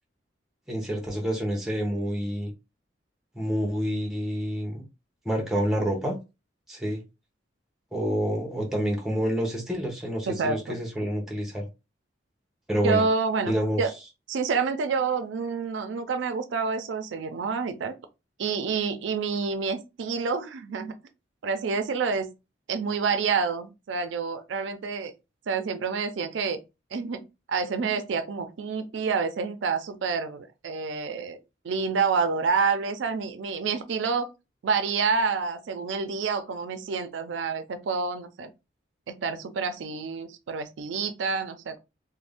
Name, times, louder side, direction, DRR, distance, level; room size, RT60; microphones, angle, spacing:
voice 1, 0.7-2.5 3.3-4.8 5.2-6.2 6.7-7.0 7.9-11.7 12.7-13.0 13.5-13.8, equal, ahead, 0.7 m, -28 dB
voice 2, 10.3-10.8 12.8-13.9 14.3-17.9 18.4-20.9 21.4-22.3 22.7-25.1 25.5-26.6 26.9-27.2 27.5-31.4 31.6-34.3 34.6-38.5 39.1-41.8, right 5 dB, 85° right, 0.4 m, -28 dB
2.5 x 2.1 x 3.4 m
head